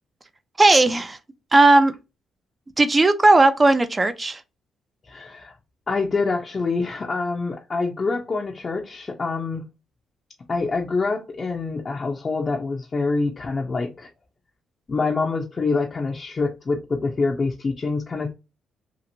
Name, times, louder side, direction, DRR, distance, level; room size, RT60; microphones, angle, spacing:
voice 1, 0.6-1.2 1.5-1.9 2.8-4.4, right 2 dB, 25° right, 0.4 m, -16 dB
voice 2, 5.1-5.5 5.9-9.6 10.5-14.1 14.9-18.3, left 3 dB, 35° left, 0.6 m, -26 dB
2.9 x 2.5 x 2.6 m
cardioid pair, 90°, 0 cm